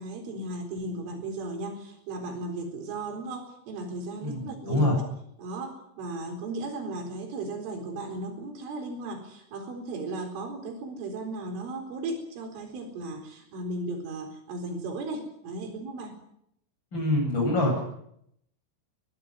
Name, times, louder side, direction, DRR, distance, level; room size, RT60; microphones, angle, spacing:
voice 1, 0.0-4.9 5.4-16.2, right 2 dB, 75° right, 5 dB, 6.7 m, -36 dB
voice 2, 4.2-5.0 16.9-17.8, left 1 dB, 20° left, 1 dB, 8.6 m, -25 dB
22.0 x 15.0 x 9.8 m, 0.76 s
omnidirectional pair, 5.8 m